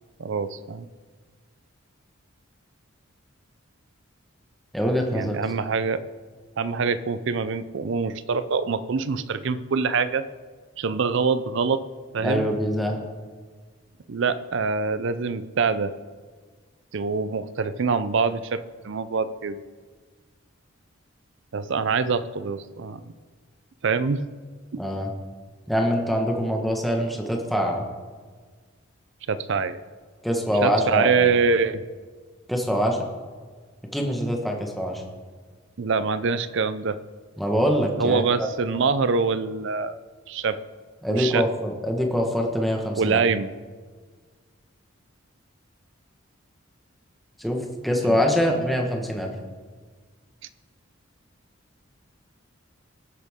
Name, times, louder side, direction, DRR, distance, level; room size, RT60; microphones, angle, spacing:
voice 1, 0.2-0.9 5.1-6.0 6.6-10.3 10.8-11.8 12.1-12.5 14.1-15.9 16.9-19.6 21.5-23.0 23.8-24.2 24.7-24.8 29.3-29.8 30.6-31.8 35.8-37.0 38.0-40.0 40.3-40.6 41.1-41.4 43.0-43.5 48.0-48.2 48.5-48.6, right 5 dB, 60° right, 14 dB, 0.5 m, -24 dB
voice 2, 4.7-5.4 12.2-13.0 24.8-25.1 25.7-27.8 30.2-31.3 32.5-33.0 33.9-35.0 37.4-38.5 41.0-43.2 47.4-49.3, equal, ahead, 1 dB, 1.4 m, -24 dB
19.5 x 8.1 x 3.7 m, 1.5 s
head